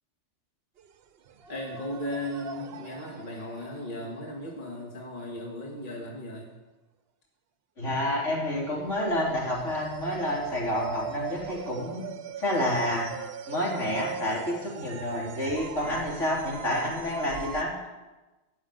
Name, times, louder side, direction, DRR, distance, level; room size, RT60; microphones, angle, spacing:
sound 1, 0.8-0.9 1.3-4.7 8.6-17.6, right 8 dB, 60° right, 0.9 m, -41 dB
voice 1, 1.5-6.5, left 1 dB, 45° left, -1 dB, 1.9 m, -36 dB
voice 2, 7.8-13.1 13.5-17.7, left 1 dB, 80° left, -5 dB, 3.7 m, -29 dB
13.0 x 6.3 x 9.2 m, 1.1 s
omnidirectional pair, 1.2 m